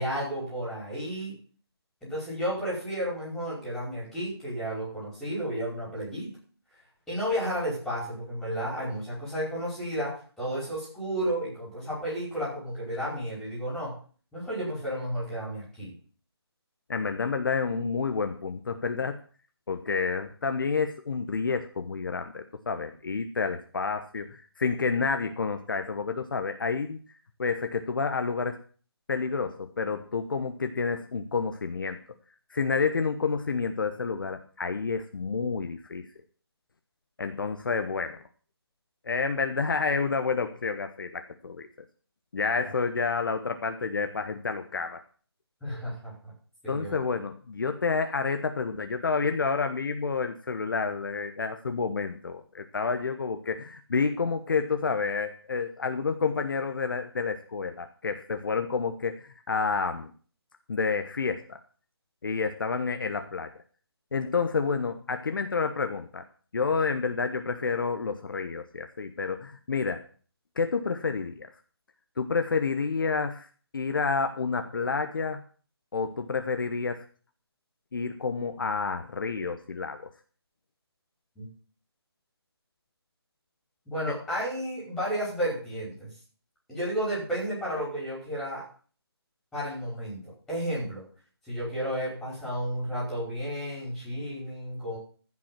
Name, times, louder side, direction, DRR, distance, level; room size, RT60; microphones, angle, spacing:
voice 1, 0.0-1.3 2.0-6.4 7.1-13.9 14.3-15.9 45.6-46.3 46.6-47.0 81.4-81.5 83.9-86.1 86.7-88.6 89.5-91.0 91.5-95.0, equal, ahead, -7 dB, 5.4 m, -32 dB
voice 2, 16.9-19.2 19.7-27.0 27.4-28.6 29.1-32.0 32.5-36.1 37.2-38.2 39.0-41.7 42.3-45.0 46.7-60.1 60.7-61.6 62.2-63.5 64.1-66.2 66.5-70.0 70.6-71.5 72.2-73.5 73.7-75.4 75.9-77.0 77.9-80.1 84.1-84.2, left 5 dB, 50° left, 7 dB, 1.1 m, -29 dB
15.0 x 6.1 x 7.5 m, 0.42 s
figure-of-eight pair, 170°, 14 cm